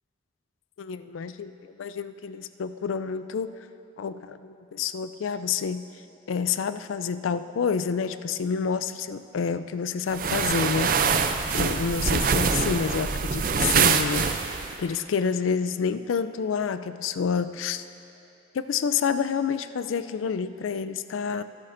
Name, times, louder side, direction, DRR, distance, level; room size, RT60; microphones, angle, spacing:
voice 1, 0.8-3.6 4.0-5.8 6.3-14.2 14.8-17.8 18.5-21.4, left 6 dB, 85° left, 12 dB, 0.4 m, -28 dB
sound 1, 10.1-14.8, right 5 dB, 45° right, 0.4 m, -24 dB
25.0 x 8.4 x 2.6 m, 2.9 s
head